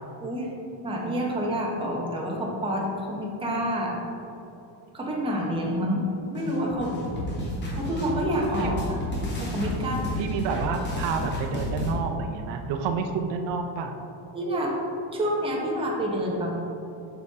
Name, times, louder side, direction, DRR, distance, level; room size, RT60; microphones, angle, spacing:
voice 1, 0.2-0.5 0.8-4.0 4.9-6.0 6.3-6.9 7.8-9.0 9.4-10.1 14.3-14.8 15.1-16.5, equal, 10° right, -3 dB, 0.8 m, -28 dB
sound 1, 6.3-11.9, left 1 dB, 25° left, 1.2 m, -31 dB
voice 2, 9.8-13.9, right 5 dB, 75° right, 4 dB, 0.7 m, -29 dB
6.8 x 5.5 x 3.6 m, 2.9 s
cardioid pair, 170°, 45 cm